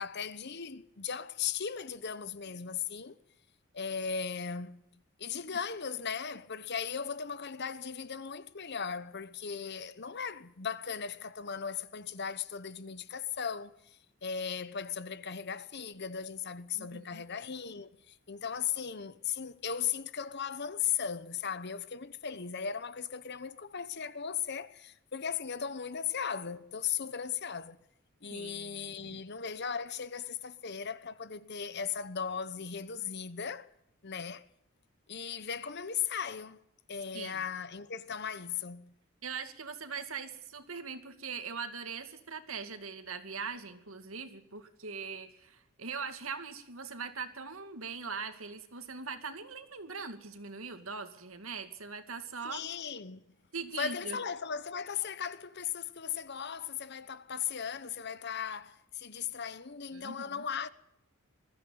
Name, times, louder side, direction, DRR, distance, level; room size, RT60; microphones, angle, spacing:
voice 1, 0.0-3.2 3.7-4.8 5.2-13.8 14.2-27.8 28.2-33.7 34.0-34.4 35.1-36.6 36.9-38.9 52.4-53.2 53.8-60.7, left 7 dB, 55° left, 1.0 m, -37 dB
voice 2, 16.8-17.2 28.3-29.2 37.1-37.4 39.2-52.6 53.5-54.2 59.9-60.4, right 5 dB, 85° right, 2.5 m, -41 dB
21.5 x 14.5 x 9.5 m
head